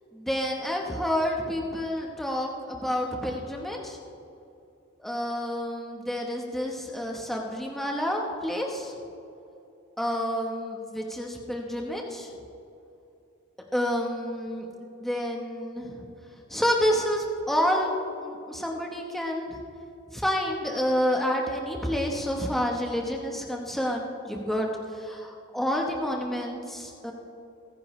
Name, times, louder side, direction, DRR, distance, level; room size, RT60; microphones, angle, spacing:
voice 1, 0.1-4.0 5.0-8.9 10.0-12.3 13.7-14.7 15.0-16.1 16.5-17.9 18.2-19.6 20.1-27.1, equal, ahead, 0 dB, 1.0 m, -29 dB
24.5 x 10.0 x 3.2 m, 2.7 s
head